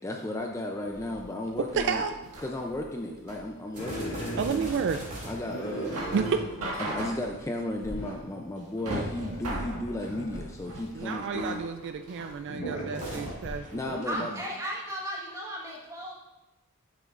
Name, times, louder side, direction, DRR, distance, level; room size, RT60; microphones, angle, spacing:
voice 1, 0.0-2.0 2.4-4.7 5.3-6.0 6.8-11.6 13.4-14.4, left 1 dB, 15° left, 1 dB, 0.4 m, -34 dB
sound 1, 0.8-12.4, right 1 dB, 75° right, 1.7 m, -39 dB
voice 2, 1.8-2.1 4.4-5.1 6.1-6.3 11.0-14.2, right 6 dB, 55° right, 8 dB, 0.3 m, -31 dB
sound 2, 3.7-7.2 12.9-15.0, right 1 dB, 35° right, 2.5 m, -43 dB
sound 3, 3.8-5.0 5.3-7.0 7.4-7.5 7.8-8.2 8.7-11.5 12.2-14.1, right 1 dB, 65° left, 2.0 m, -38 dB
voice 3, 14.0-16.1, equal, 15° right, -3 dB, 1.4 m, -35 dB
10.0 x 7.0 x 2.5 m, 1.0 s
head